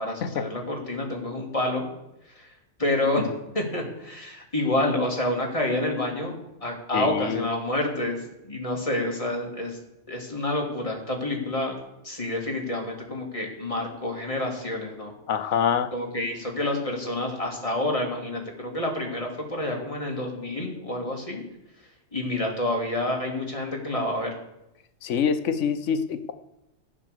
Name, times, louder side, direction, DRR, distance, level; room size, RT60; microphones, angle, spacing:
voice 1, 0.0-1.8 2.4-2.5 2.8-3.3 3.5-8.2 8.4-9.8 10.1-11.8 12.0-15.1 15.9-21.4 22.1-24.4, left 1 dB, 25° left, 0 dB, 2.3 m, -28 dB
voice 2, 6.9-7.4 15.3-15.9 25.0-26.3, left 7 dB, 65° left, 9 dB, 1.1 m, -25 dB
15.0 x 7.4 x 6.6 m, 0.90 s
omnidirectional pair, 1.4 m